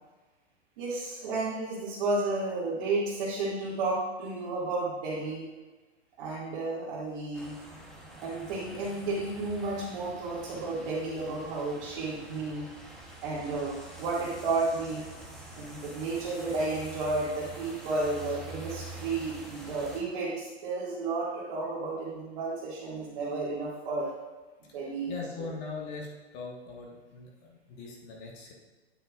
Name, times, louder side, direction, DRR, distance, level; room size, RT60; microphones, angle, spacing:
voice 1, 0.8-5.5 6.2-7.6 8.2-12.7 13.2-15.0 15.5-24.1 24.7-25.1 25.4-25.5, right 3 dB, 45° right, -8 dB, 2.1 m, -32 dB
sound 1, 7.3-20.0, right 2 dB, ahead, 0.9 m, -46 dB
voice 2, 25.1-28.5, left 4 dB, 30° left, -1 dB, 1.4 m, -41 dB
9.4 x 7.6 x 2.4 m, 1.2 s
hypercardioid pair, 145°, 33 cm